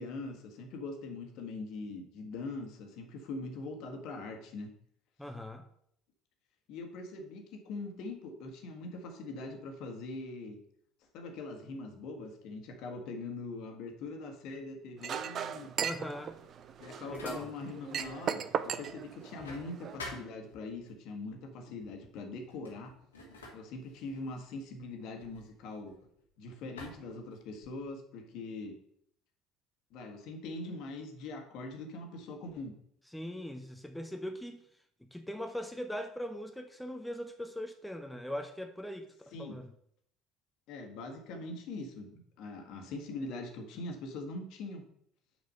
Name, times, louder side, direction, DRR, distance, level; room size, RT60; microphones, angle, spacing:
voice 1, 0.0-4.7 6.7-10.6 11.1-15.7 16.8-22.9 23.5-26.0 26.4-28.7 29.9-32.7 39.3-39.6 40.7-44.9, left 2 dB, 55° left, 4 dB, 1.6 m, -42 dB
voice 2, 5.2-5.6 15.8-16.4 17.1-17.5 33.1-34.6 35.0-39.7, equal, 5° left, 5 dB, 0.9 m, -40 dB
Chink clink, 15.0-20.0, right 8 dB, 45° right, 0.5 m, -38 dB
sound 1, 16.2-18.3 18.6-20.9 21.8-22.0 22.4-26.2 26.8-27.9, left 2 dB, 80° left, 1.8 m, -49 dB
6.4 x 5.0 x 6.6 m, 0.69 s
figure-of-eight pair, 60°, 0 cm